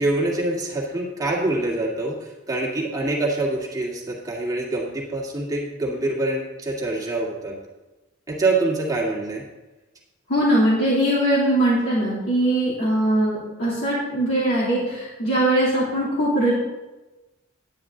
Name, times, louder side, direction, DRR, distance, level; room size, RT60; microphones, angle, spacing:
voice 1, 0.0-7.6 8.3-9.4, right 2 dB, 20° right, -3 dB, 1.8 m, -25 dB
voice 2, 10.3-16.5, right 1 dB, 80° left, -9 dB, 2.9 m, -21 dB
10.0 x 9.3 x 3.8 m, 1.1 s
head